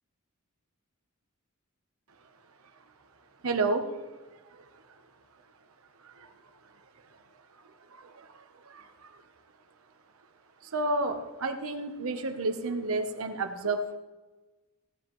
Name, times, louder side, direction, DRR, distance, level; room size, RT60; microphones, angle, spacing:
voice 1, 3.4-3.9 4.5-4.7 6.0-6.3 7.9-9.2 10.6-14.0, right 2 dB, 70° right, 6 dB, 1.0 m, -31 dB
16.5 x 10.0 x 3.1 m, 1.2 s
head